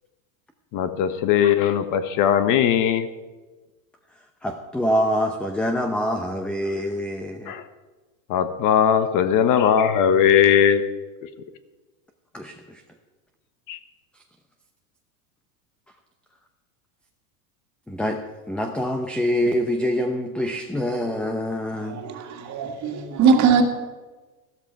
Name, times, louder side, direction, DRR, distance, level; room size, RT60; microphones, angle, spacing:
voice 1, 0.7-3.1 7.5-7.6 8.3-10.9 13.7-13.8, left 9 dB, 45° left, 1.1 m, -19 dB
voice 2, 4.4-7.5 12.3-12.8 17.9-18.2 18.5-22.0, equal, ahead, 0.7 m, -25 dB
voice 3, 21.9-23.6, right 5 dB, 40° right, 2.0 m, -20 dB
13.5 x 13.0 x 4.7 m
supercardioid pair, 130°, 44 cm